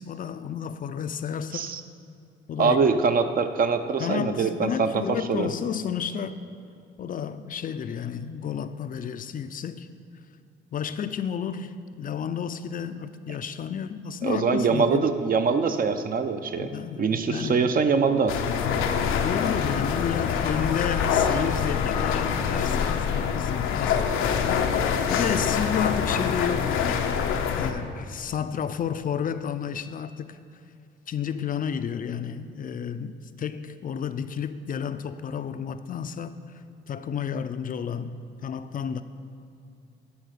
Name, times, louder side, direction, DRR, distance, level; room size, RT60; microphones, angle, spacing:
voice 1, 0.0-1.7 2.5-2.8 4.0-6.4 7.0-9.9 10.7-15.0 16.6-17.6 19.1-27.2 27.6-30.4 31.1-36.4 36.9-39.0, left 7 dB, 45° left, 0.4 m, -31 dB
voice 2, 2.6-5.0 5.3-5.5 14.2-16.7 17.0-18.4, right 5 dB, 45° right, 0.6 m, -23 dB
sound 1, 18.3-27.7, left 7 dB, 90° left, 0.6 m, -25 dB
10.0 x 4.3 x 6.5 m
cardioid pair, 90°, 20 cm